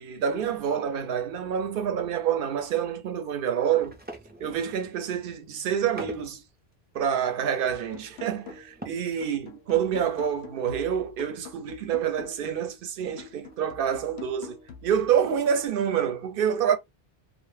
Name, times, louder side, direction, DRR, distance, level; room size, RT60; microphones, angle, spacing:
voice 1, 0.0-3.9 4.4-6.4 6.9-16.8, right 8 dB, 65° right, 0.7 m, -27 dB
sound 1, 3.7-5.0 5.6-6.4 6.7-6.8 7.0-9.2 9.5-9.6 9.9-10.1 10.3-10.4 12.1-12.6 13.1-13.2 13.5-13.9, right 1 dB, 15° right, 0.3 m, -44 dB
sound 2, 7.7-8.9 9.2-12.7 13.2-15.7, left 7 dB, 90° left, 0.9 m, -46 dB
2.1 x 2.0 x 3.1 m
omnidirectional pair, 1.1 m